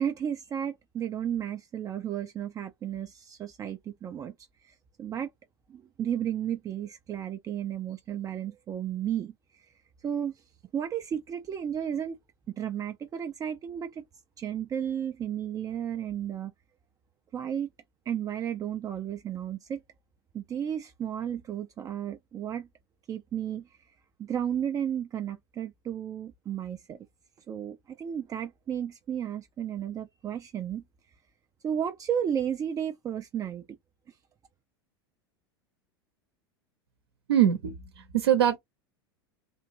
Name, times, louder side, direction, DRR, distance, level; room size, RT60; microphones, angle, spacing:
voice 1, 0.0-4.3 4.6-5.3 5.7-9.7 10.0-10.4 10.7-12.2 12.6-14.0 14.4-16.5 17.3-17.7 18.1-19.8 20.3-22.7 23.1-23.7 24.2-27.0 27.5-30.8 31.6-33.8, right 9 dB, 25° right, 0.4 m, -33 dB
voice 2, 37.3-38.6, right 10 dB, 80° right, 0.8 m, -23 dB
3.5 x 2.5 x 2.9 m
hypercardioid pair, 90°, 13 cm